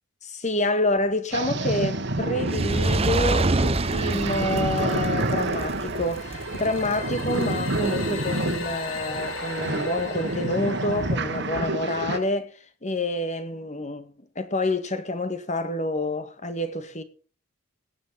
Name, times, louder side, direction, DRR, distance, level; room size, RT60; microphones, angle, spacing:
voice 1, 0.3-17.0, left 2 dB, 35° left, 1.9 m, -28 dB
sound 1, 1.3-12.2, right 2 dB, 55° right, 1.9 m, -29 dB
Fire, 2.3-8.7 9.4-9.5, right 2 dB, 25° right, 0.7 m, -27 dB
sound 2, 5.9-11.9, left 5 dB, 60° left, 3.1 m, -38 dB
17.5 x 9.8 x 5.9 m
head